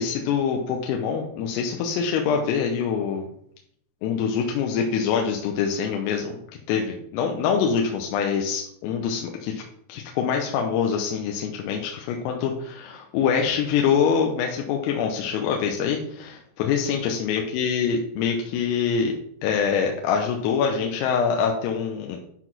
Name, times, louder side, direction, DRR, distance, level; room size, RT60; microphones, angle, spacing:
voice 1, 0.0-3.3 4.0-6.4 6.7-9.6 9.9-19.1 19.4-22.2, left 6 dB, 90° left, 2 dB, 3.6 m, -25 dB
11.0 x 4.0 x 6.1 m, 0.68 s
omnidirectional pair, 5.9 m